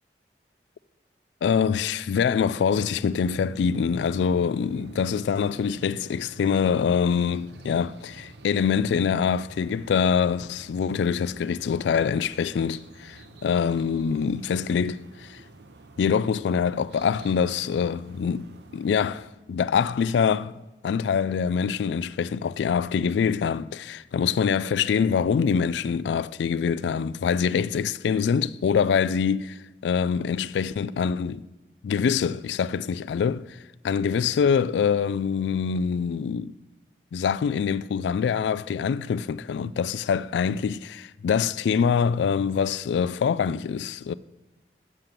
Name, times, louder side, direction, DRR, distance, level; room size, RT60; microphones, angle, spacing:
voice 1, 1.4-15.4 16.0-31.5 31.8-33.6 33.8-36.5 37.1-44.1, left 6 dB, 85° left, 0.3 m, -25 dB
sound 1, 3.0-19.3, right 2 dB, 80° right, 0.8 m, -48 dB
7.7 x 7.3 x 6.6 m
head